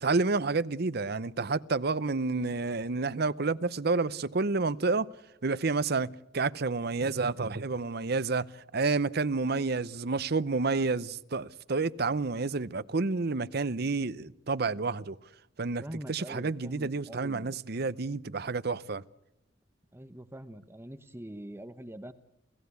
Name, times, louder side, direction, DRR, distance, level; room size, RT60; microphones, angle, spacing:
voice 1, 0.0-5.1 5.4-6.1 6.3-15.2 15.6-15.8 16.1-19.0, right 3 dB, 55° right, 0.8 m, -29 dB
voice 2, 15.8-17.6 19.9-22.1, right 1 dB, 15° right, 1.0 m, -43 dB
29.5 x 16.0 x 8.3 m
head